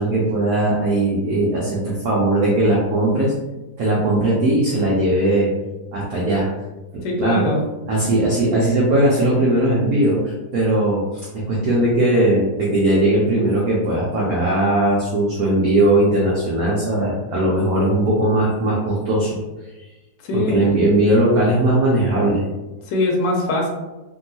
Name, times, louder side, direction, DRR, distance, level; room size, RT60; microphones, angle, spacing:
voice 1, 0.0-3.3 3.8-5.5 5.9-6.5 6.9-7.5 7.9-19.4 20.3-22.5, right 1 dB, 65° right, -5 dB, 0.9 m, -19 dB
voice 2, 7.0-7.6 20.2-20.8 22.9-23.7, left 2 dB, 70° left, 0 dB, 1.2 m, -22 dB
3.0 x 2.7 x 2.6 m, 1.1 s
omnidirectional pair, 2.1 m